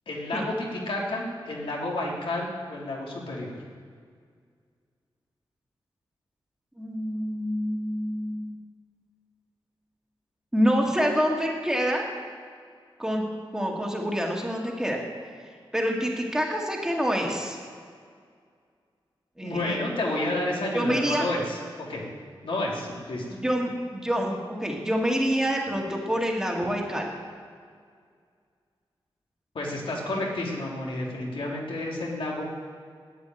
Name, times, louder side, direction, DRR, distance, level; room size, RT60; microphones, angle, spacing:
voice 1, 0.1-3.5 19.4-21.6 21.9-22.1 22.4-23.2 29.5-32.5, left 1 dB, 75° left, -3 dB, 3.1 m, -30 dB
voice 2, 6.8-8.5 10.5-12.0 13.0-13.2 13.5-15.0 15.7-17.6 19.4-19.8 20.7-21.3 23.3-27.1, equal, 5° right, -1 dB, 2.0 m, -26 dB
12.0 x 9.6 x 9.1 m, 2.1 s
wide cardioid pair, 170°, 9 cm